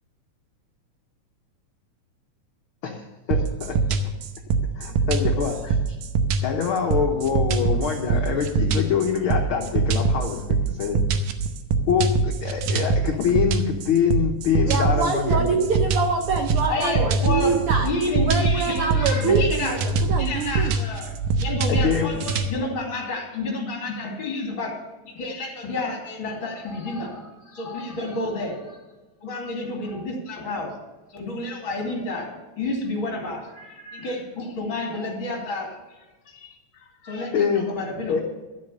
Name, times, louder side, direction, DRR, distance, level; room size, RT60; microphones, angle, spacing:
voice 1, 2.8-4.1 4.7-5.8 6.4-11.0 11.9-15.6 21.7-22.1 37.3-37.7 38.1-38.2, left 7 dB, 65° left, 2 dB, 1.3 m, -25 dB
sound 1, 3.3-22.5, right 4 dB, 90° right, 2.5 m, -23 dB
voice 2, 14.7-17.9 18.3-20.8, right 5 dB, 70° right, 4 dB, 1.3 m, -25 dB
voice 3, 16.7-19.8 20.2-21.1 21.4-24.8 25.0-28.8 29.2-30.7 31.1-38.2, left 2 dB, 40° left, 1 dB, 3.0 m, -30 dB
12.5 x 7.5 x 6.7 m, 1.2 s
omnidirectional pair, 3.6 m